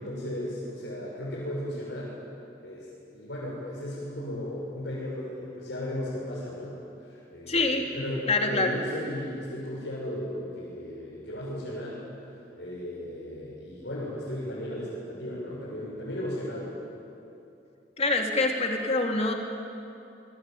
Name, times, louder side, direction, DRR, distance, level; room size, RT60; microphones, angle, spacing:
voice 1, 0.0-2.1 2.6-12.0 12.4-16.8, left 1 dB, 70° left, -7 dB, 7.0 m, -35 dB
voice 2, 7.5-7.8 8.3-8.8 18.0-19.3, left 2 dB, 35° left, 3 dB, 2.8 m, -25 dB
27.0 x 22.0 x 9.3 m, 2.7 s
head